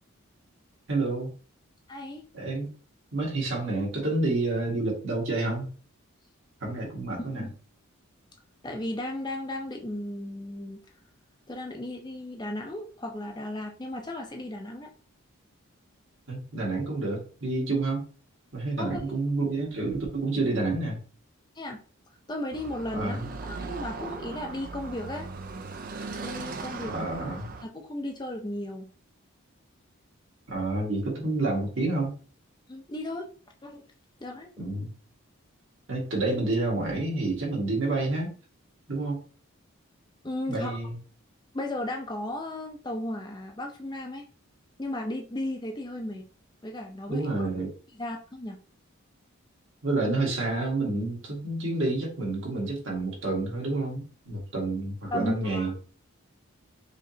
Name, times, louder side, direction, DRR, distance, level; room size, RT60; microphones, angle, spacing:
voice 1, 0.9-1.3 2.3-2.7 3.1-5.7 6.6-7.5 16.3-18.1 18.5-21.0 22.9-23.3 26.9-27.5 30.5-32.2 34.6-34.9 35.9-38.3 38.9-39.2 40.5-41.0 47.1-47.7 49.8-55.8, right 2 dB, 60° right, -2 dB, 1.8 m, -29 dB
voice 2, 1.9-2.2 7.2-7.5 8.6-10.8 11.5-14.9 18.8-19.2 21.6-21.8 22.3-25.3 26.2-27.1 27.6-28.9 32.7-33.3 33.6-33.8 34.2-34.7 40.2-40.8 41.5-44.3 44.8-46.3 46.6-47.5 48.0-48.6 55.1-55.8, left 1 dB, 20° left, 2 dB, 0.5 m, -35 dB
Car passing by / Traffic noise roadway noise, 22.5-27.6, right 4 dB, 40° right, 0.4 m, -38 dB
5.0 x 2.9 x 2.7 m, 0.39 s
head